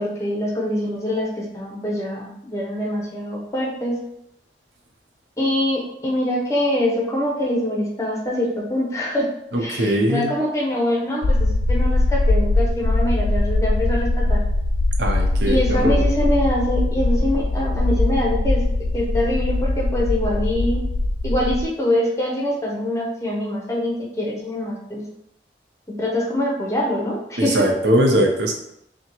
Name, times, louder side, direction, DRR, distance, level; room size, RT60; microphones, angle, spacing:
voice 1, 0.0-4.0 5.4-9.3 9.6-14.4 15.4-18.6 18.9-20.8 21.2-25.1 25.9-27.7, left 1 dB, 15° left, -3 dB, 0.8 m, -24 dB
voice 2, 9.5-10.3 15.0-16.0 27.4-28.6, right 1 dB, 85° right, 1 dB, 0.8 m, -20 dB
sound 1, 11.2-21.6, left 2 dB, 50° left, 0.3 m, -21 dB
5.7 x 2.2 x 3.0 m, 0.77 s
head